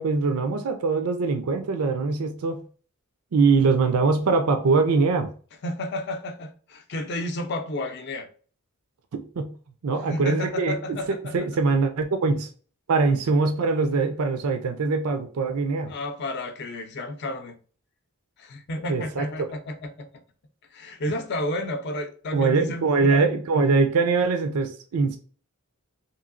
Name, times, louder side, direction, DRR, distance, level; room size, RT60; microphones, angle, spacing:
voice 1, 0.0-2.6 3.3-5.3 9.1-9.5 9.8-10.8 11.3-12.5 12.9-15.9 18.9-19.3 22.3-25.2, right 4 dB, 80° right, 0.4 m, -22 dB
voice 2, 5.6-8.3 10.0-11.5 15.9-17.6 18.4-20.1 20.7-23.3, left 1 dB, 50° left, 0.5 m, -32 dB
3.0 x 2.7 x 2.5 m
head